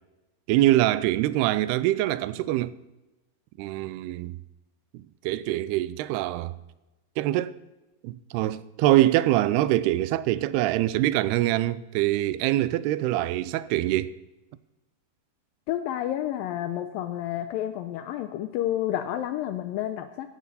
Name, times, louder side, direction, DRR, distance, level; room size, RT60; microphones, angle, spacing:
voice 1, 0.5-2.7 3.6-4.4 4.9-6.5 7.2-7.5 8.0-14.2, right 15 dB, 85° right, 2.6 m, -24 dB
voice 2, 15.7-20.3, left 12 dB, 85° left, 2.1 m, -30 dB
15.0 x 12.5 x 4.1 m
omnidirectional pair, 4.6 m